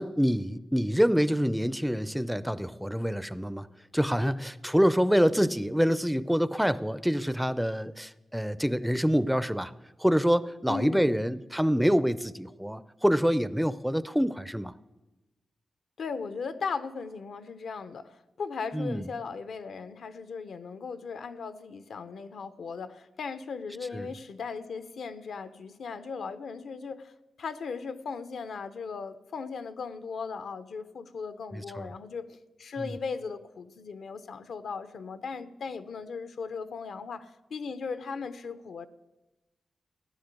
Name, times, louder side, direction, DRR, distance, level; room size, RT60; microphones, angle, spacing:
voice 1, 0.0-3.7 3.9-9.7 10.0-14.7 18.7-19.0 23.9-24.1 31.5-31.9 32.8-32.9, equal, ahead, 16 dB, 0.4 m, -26 dB
voice 2, 10.7-11.2 16.0-38.9, left 5 dB, 75° left, 12 dB, 0.8 m, -37 dB
16.5 x 10.0 x 8.2 m, 1.1 s
wide cardioid pair, 110°, 0 cm